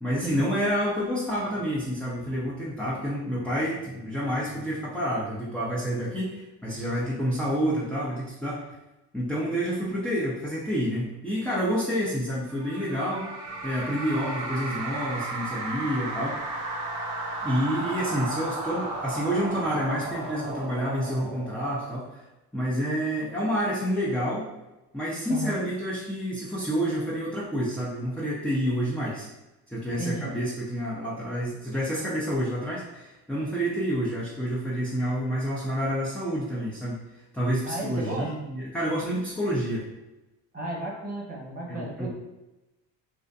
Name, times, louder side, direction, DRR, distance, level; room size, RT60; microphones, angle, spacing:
voice 1, 0.0-8.7 9.1-13.3 13.6-16.4 17.4-22.2 22.5-24.5 24.9-29.3 29.7-37.0 37.3-39.8 41.7-42.1, equal, 5° left, -6 dB, 0.4 m, -28 dB
sound 1, 12.4-22.1, right 2 dB, 35° right, 0.8 m, -34 dB
sound 2, 13.4-20.5, right 3 dB, 85° right, 0.6 m, -47 dB
voice 2, 25.3-25.6 30.0-30.3 37.6-38.3 40.5-42.1, right 2 dB, 20° right, -4 dB, 1.1 m, -33 dB
2.6 x 2.1 x 2.4 m, 1.0 s
supercardioid pair, 70°, 47 cm